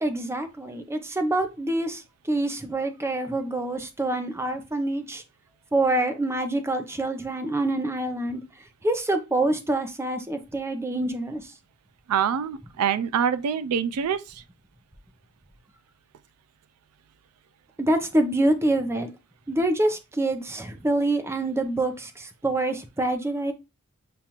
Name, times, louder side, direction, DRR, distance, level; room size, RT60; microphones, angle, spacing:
voice 1, 0.0-2.0 2.3-5.2 5.7-8.4 8.8-11.4 17.8-19.1 19.5-23.5, right 2 dB, 10° right, 0.5 m, -26 dB
voice 2, 12.1-14.4, right 8 dB, 80° right, 0.4 m, -25 dB
6.9 x 2.4 x 2.9 m
head